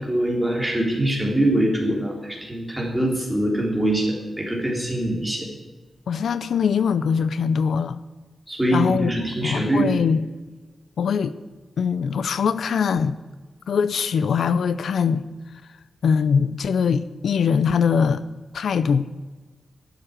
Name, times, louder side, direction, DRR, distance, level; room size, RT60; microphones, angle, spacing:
voice 1, 0.0-5.5 8.5-9.9, right 1 dB, 5° right, 3.4 m, -23 dB
voice 2, 6.1-8.0 8.7-9.1 9.4-10.2 11.0-11.3 11.8-13.2 13.7-15.2 16.0-18.2 18.5-19.1, left 6 dB, 90° left, 0.5 m, -22 dB
12.0 x 7.5 x 9.9 m
wide cardioid pair, 160°, 0 cm